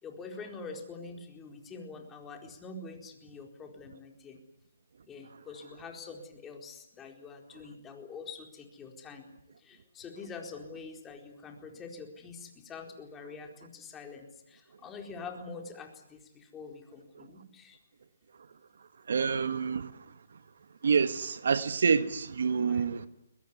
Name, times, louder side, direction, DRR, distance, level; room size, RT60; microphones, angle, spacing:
voice 1, 0.0-4.4 5.0-9.3 9.6-17.8 22.7-22.9, left 4 dB, 15° left, 4.4 m, -45 dB
voice 2, 19.1-20.4 20.8-23.1, right 5 dB, 65° right, 1.4 m, -28 dB
22.5 x 21.5 x 9.8 m
hypercardioid pair, 145°, 0 cm